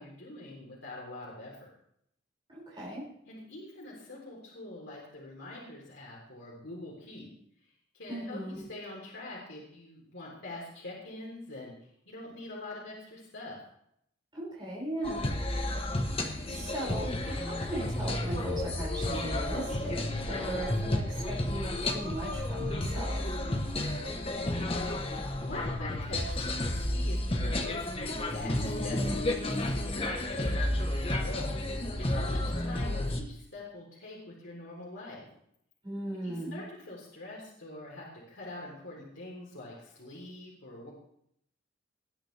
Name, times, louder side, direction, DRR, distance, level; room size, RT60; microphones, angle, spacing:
voice 1, 0.0-1.7 3.3-7.3 7.9-11.7 12.1-13.6 16.2-16.4 24.3-35.3 36.2-40.9, left 2 dB, 70° left, -5 dB, 3.5 m, -44 dB
voice 2, 2.5-3.1 8.1-8.6 14.3-15.3 16.1-23.3 32.4-32.5 35.8-36.6, right 1 dB, 25° right, -6 dB, 5.7 m, -38 dB
sound 1, 15.0-33.2, left 1 dB, 30° left, 1.1 m, -31 dB
19.5 x 9.1 x 3.4 m, 0.71 s
head